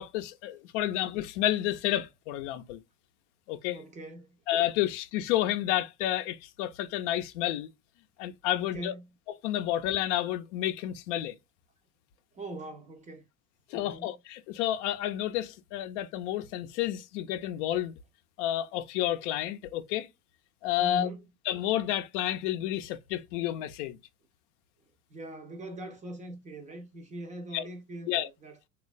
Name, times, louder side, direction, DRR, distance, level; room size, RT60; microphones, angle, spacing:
voice 1, 0.0-2.8 3.5-3.8 4.5-7.7 8.2-8.9 9.4-11.4 13.7-17.9 18.4-20.1 20.6-21.1 21.5-24.0 27.5-27.6 28.1-28.3, left 13 dB, 55° left, 0.5 m, -30 dB
voice 2, 3.7-4.4 8.6-9.1 12.3-13.3 13.7-14.1 20.8-21.2 25.1-28.7, right 1 dB, 20° right, 0.4 m, -41 dB
3.1 x 2.4 x 2.2 m
hypercardioid pair, 85°, 43 cm